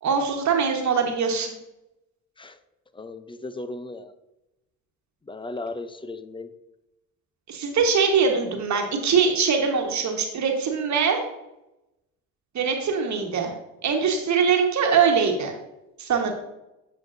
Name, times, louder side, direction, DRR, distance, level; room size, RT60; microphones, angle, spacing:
voice 1, 0.0-1.5 7.5-11.2 12.5-13.5 13.8-15.5 16.0-16.3, right 6 dB, 45° right, 3 dB, 1.4 m, -22 dB
voice 2, 2.9-4.1 5.3-6.5, left 2 dB, 15° left, 11 dB, 0.6 m, -36 dB
9.2 x 5.1 x 2.7 m, 0.92 s
hypercardioid pair, 60°, 38 cm